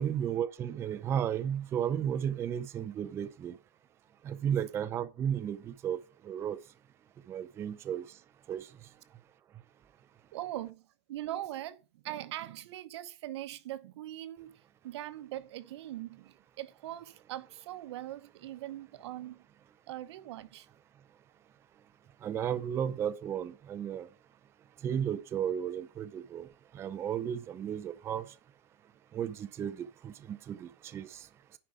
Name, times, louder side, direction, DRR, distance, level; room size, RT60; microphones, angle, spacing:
voice 1, 0.0-3.5 4.3-6.0 6.3-6.6 7.3-8.0 8.5-8.6 22.2-24.1 24.8-26.5 26.7-28.3 29.1-31.2, right 9 dB, 20° right, 0.5 m, -34 dB
voice 2, 10.3-14.5 14.8-19.4 19.9-20.7, right 14 dB, 80° right, 0.9 m, -41 dB
10.0 x 4.9 x 4.7 m
supercardioid pair, 165°, 14 cm